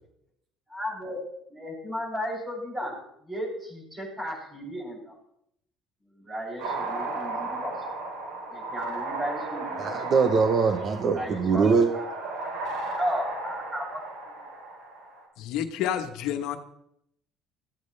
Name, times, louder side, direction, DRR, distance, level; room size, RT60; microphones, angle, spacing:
voice 1, 0.7-1.2 1.5-2.9 3.2-5.2 6.1-7.8 8.5-10.0 11.1-12.1 12.8-14.0, equal, 20° right, -2 dB, 7.4 m, -34 dB
sound 1, 6.6-15.3, right 2 dB, 80° right, 4.5 m, -35 dB
voice 2, 9.8-11.9, right 5 dB, 45° right, 7 dB, 1.0 m, -22 dB
voice 3, 15.4-16.6, left 10 dB, 80° left, 6 dB, 1.3 m, -29 dB
17.0 x 14.5 x 3.4 m, 0.75 s
cardioid pair, 125°, 0 cm